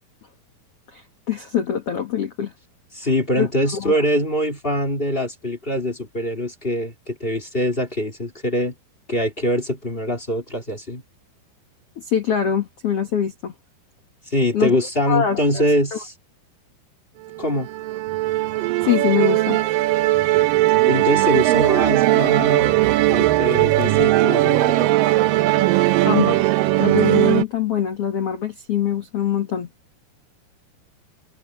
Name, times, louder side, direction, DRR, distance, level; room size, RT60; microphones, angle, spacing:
voice 1, 0.9-2.5 3.4-3.5 3.7-4.0 12.0-13.5 14.5-14.8 15.1-15.6 15.9-16.0 18.8-19.6 26.0-26.4 26.8-29.7, left 9 dB, 70° left, 1.4 m, -23 dB
voice 2, 2.9-8.7 9.1-11.0 14.3-16.1 17.4-17.7 20.8-24.9, equal, 15° left, 2.2 m, -23 dB
Musical instrument, 17.3-27.4, right 16 dB, 80° right, 2.0 m, -18 dB
omnidirectional pair, 4.9 m